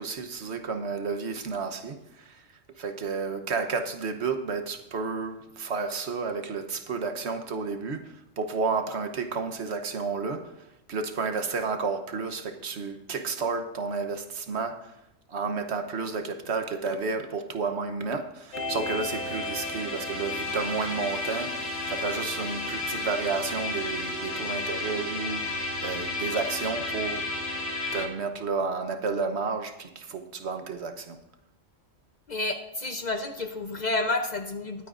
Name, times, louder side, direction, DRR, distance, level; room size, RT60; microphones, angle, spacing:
voice 1, 0.0-14.9 15.3-27.3 27.9-31.2, right 4 dB, 65° right, 7 dB, 1.2 m, -31 dB
sound 1, 18.5-28.1, left 2 dB, 70° left, 2.3 m, -32 dB
voice 2, 32.3-34.9, left 2 dB, 40° left, 5 dB, 0.8 m, -30 dB
21.5 x 9.0 x 2.5 m, 0.89 s
omnidirectional pair, 1.3 m